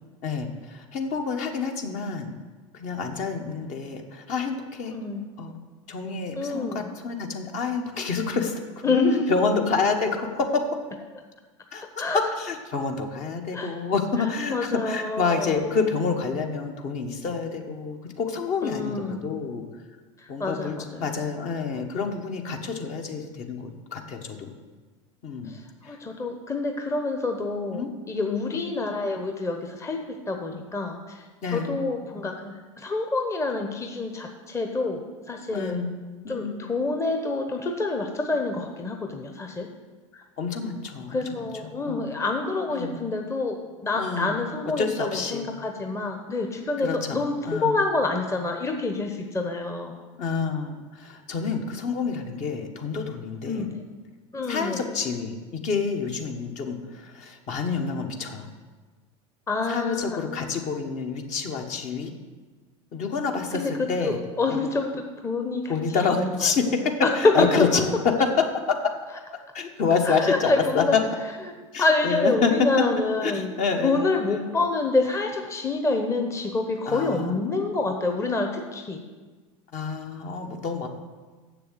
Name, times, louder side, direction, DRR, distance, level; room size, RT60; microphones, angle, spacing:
voice 1, 0.2-2.3 2.7-5.0 5.4-5.5 5.9-8.9 9.3-10.8 11.7-12.0 12.3-19.6 20.3-24.5 25.2-25.5 25.8-26.0 27.7-28.6 31.4-31.7 35.5-35.9 36.2-36.7 40.4-42.0 42.7-43.0 43.9-44.4 44.8-45.5 46.8-47.8 50.2-53.7 54.5-58.5 59.7-62.1 62.9-64.2 64.5-64.6 65.7-66.6 67.1-67.8 68.2-68.3 69.5-71.0 71.7-72.5 73.2-74.5 76.9-77.4 79.7-80.9, left 5 dB, 45° left, 3 dB, 1.4 m, -28 dB
voice 2, 4.9-5.3 6.4-6.9 8.8-9.3 12.0-12.2 13.5-13.7 14.5-15.6 18.6-19.3 20.2-21.2 25.5-35.8 36.3-39.7 40.1-40.2 41.1-50.0 53.5-53.9 54.3-54.8 59.5-60.3 63.5-66.5 67.0-67.8 70.0-71.0 71.8-73.5 73.8-79.0, left 3 dB, 15° left, 3 dB, 1.0 m, -27 dB
7.3 x 6.9 x 8.0 m, 1.4 s
hypercardioid pair, 80°, 17 cm